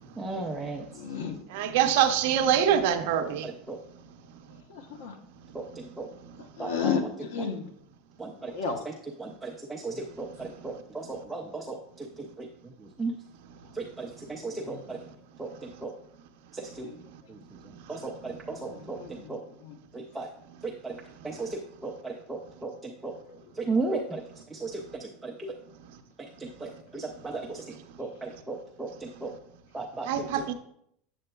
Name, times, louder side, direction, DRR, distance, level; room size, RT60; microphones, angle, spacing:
voice 1, 0.2-0.8 3.4-3.8 5.5-6.1 6.6-6.9 8.2-8.5 8.8-8.9 9.2-11.8 12.2-12.5 13.0-13.1 13.8-15.0 15.4-15.5 15.8-15.9 16.5-16.6 17.9-19.0 19.3-19.4 19.9-20.3 20.6-20.9 21.2-23.1 23.6-24.2 24.5-25.5 26.4-27.6 28.0-28.9 29.2-29.3 29.7-30.1, right 3 dB, 5° right, -2 dB, 0.3 m, -35 dB
voice 2, 0.9-1.3 4.7-5.1 6.6-7.6 8.5-8.8 14.5-14.8 16.8-16.9 19.0-19.3 19.6-19.7, left 6 dB, 85° left, 8 dB, 0.8 m, -32 dB
voice 3, 1.5-3.5 30.1-30.5, right 9 dB, 60° right, 7 dB, 0.6 m, -24 dB
7.7 x 7.5 x 2.3 m, 0.71 s
supercardioid pair, 180°, 0 cm